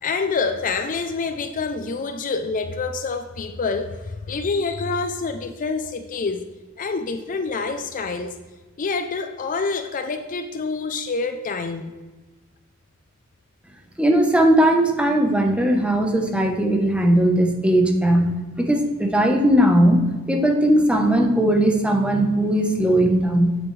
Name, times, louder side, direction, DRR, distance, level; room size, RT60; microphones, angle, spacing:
voice 1, 0.0-6.4 6.8-8.4 8.8-11.9, left 4 dB, 40° left, 7 dB, 0.5 m, -27 dB
voice 2, 14.0-23.6, right 1 dB, 5° right, 3 dB, 0.9 m, -18 dB
8.4 x 8.1 x 3.2 m, 1.3 s
head